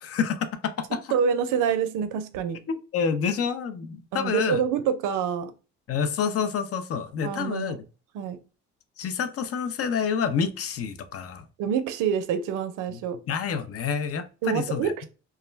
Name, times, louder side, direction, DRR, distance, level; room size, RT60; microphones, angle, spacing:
voice 1, 0.0-1.0 2.7-4.6 5.9-7.8 9.0-11.4 12.9-13.0 13.3-14.9, left 6 dB, 50° left, 0.4 m, -28 dB
voice 2, 1.1-2.6 4.1-5.5 7.2-7.8 8.1-8.4 11.6-13.2 14.4-15.1, right 7 dB, 85° right, 0.5 m, -26 dB
2.2 x 2.0 x 3.2 m
cardioid pair, 90°, 30 cm